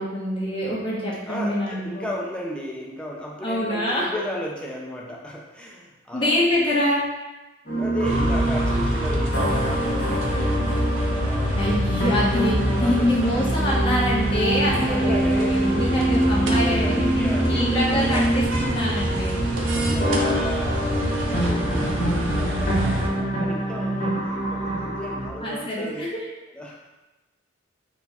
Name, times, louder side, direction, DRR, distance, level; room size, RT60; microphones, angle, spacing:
voice 1, 0.0-2.1 3.4-4.1 6.1-7.0 11.5-19.4 20.0-20.5 25.4-26.2, left 1 dB, 25° left, -6 dB, 1.0 m, -25 dB
voice 2, 1.3-6.3 7.7-10.9 11.2-11.7 12.8-13.6 14.7-16.0 16.3-18.7 19.2-19.4 19.7-26.0 26.5-26.8, equal, 5° left, -3 dB, 0.5 m, -34 dB
sound 1, 7.7-25.3, right 1 dB, 45° left, 1.2 m, -25 dB
sound 2, 8.0-23.1, right 1 dB, 70° right, 0.6 m, -27 dB
4.3 x 2.2 x 4.1 m, 1.1 s
head